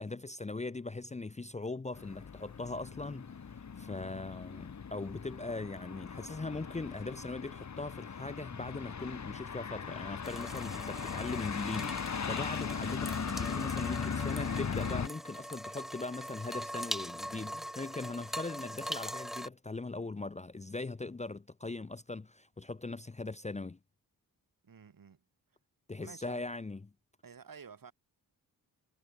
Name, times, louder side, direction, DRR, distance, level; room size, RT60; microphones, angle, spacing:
voice 1, 0.0-23.8 25.9-26.8, left 3 dB, 20° left, 0.7 m, -40 dB
sound 1, 1.9-15.1, left 6 dB, 45° left, 1.5 m, -38 dB
sound 2, 10.2-19.5, equal, ahead, 0.4 m, -42 dB
voice 2, 24.6-25.2 26.0-26.4 27.2-27.9, right 6 dB, 60° right, 4.5 m, -51 dB
cardioid pair, 50°, 38 cm